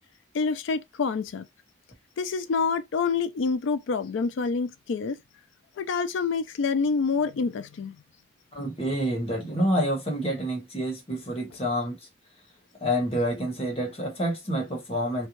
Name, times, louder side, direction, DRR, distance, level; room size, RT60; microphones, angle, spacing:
voice 1, 0.3-1.4 2.2-5.2 5.8-8.0, left 5 dB, 75° left, 0.4 m, -27 dB
voice 2, 8.5-12.0 12.8-15.3, equal, 30° left, 1.2 m, -28 dB
2.6 x 2.3 x 3.0 m
head